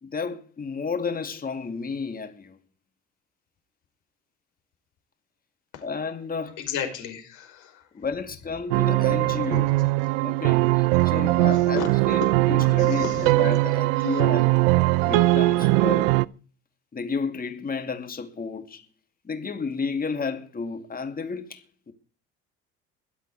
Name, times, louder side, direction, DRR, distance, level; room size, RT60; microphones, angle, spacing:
voice 1, 0.0-2.6 5.8-6.6 7.9-9.8 10.2-14.5 15.0-16.1 16.9-18.9 19.2-21.9, left 5 dB, 25° left, 2.6 m, -32 dB
voice 2, 6.6-7.8 11.8-11.9 12.4-13.3 14.0-14.2, left 8 dB, 65° left, 5.4 m, -34 dB
sound 1, 8.7-16.3, right 19 dB, 70° right, 0.6 m, -21 dB
22.5 x 8.2 x 4.9 m
hypercardioid pair, 65°, 33 cm